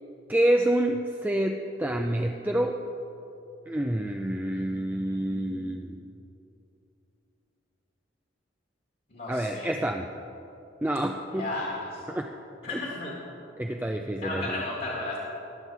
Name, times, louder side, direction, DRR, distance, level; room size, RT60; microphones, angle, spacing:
voice 1, 0.3-2.8 3.7-6.0 9.3-10.1 10.8-11.5 12.1-12.3 12.7-12.8 13.6-14.6, right 1 dB, 10° right, 3 dB, 0.4 m, -27 dB
voice 2, 4.5-5.9 9.1-9.7 11.3-12.0 12.6-13.2 14.2-15.2, left 2 dB, 50° left, -3 dB, 1.9 m, -35 dB
20.0 x 7.4 x 4.7 m, 2.9 s
head